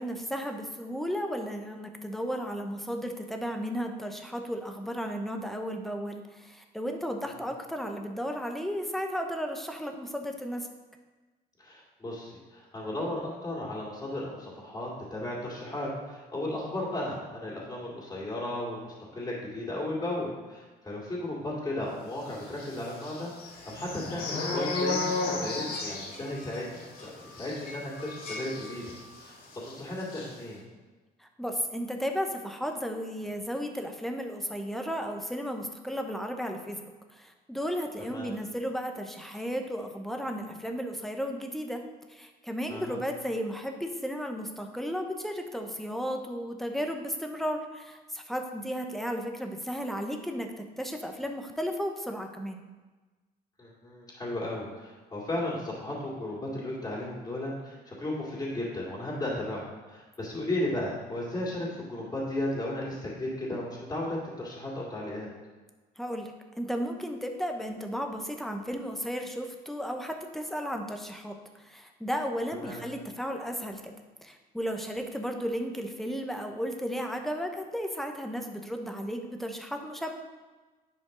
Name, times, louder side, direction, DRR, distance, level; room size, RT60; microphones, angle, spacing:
voice 1, 0.0-10.7 31.2-41.8 42.1-52.6 66.0-73.9 74.2-80.1, equal, ahead, 4 dB, 0.9 m, -34 dB
voice 2, 11.6-28.8 29.2-29.4 29.7-30.6 38.1-38.3 42.7-43.0 53.6-65.3 72.6-72.8, left 1 dB, 20° left, -5 dB, 2.4 m, -35 dB
sound 1, 22.5-29.3 29.5-29.7 30.0-30.3, left 3 dB, 60° left, 1.7 m, -34 dB
10.0 x 5.1 x 3.9 m, 1.3 s
cardioid pair, 110°, 17 cm